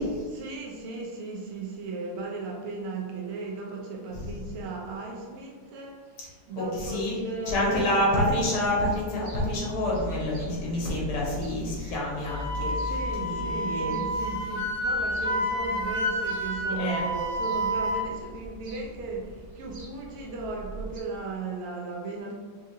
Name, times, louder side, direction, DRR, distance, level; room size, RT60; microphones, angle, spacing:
voice 1, 0.3-7.9 9.9-10.1 12.8-22.3, right 3 dB, 90° right, -1 dB, 1.7 m, -36 dB
voice 2, 6.6-7.2 7.5-12.9 13.2-13.9 16.6-17.0, left 1 dB, 75° left, -4 dB, 2.0 m, -28 dB
sound 1, 8.5-21.0, right 1 dB, 60° right, 0.9 m, -41 dB
Wind instrument woodwind instrument, 12.3-18.1, equal, 55° left, 0.8 m, -29 dB
5.9 x 2.7 x 2.7 m, 1.5 s
omnidirectional pair, 2.3 m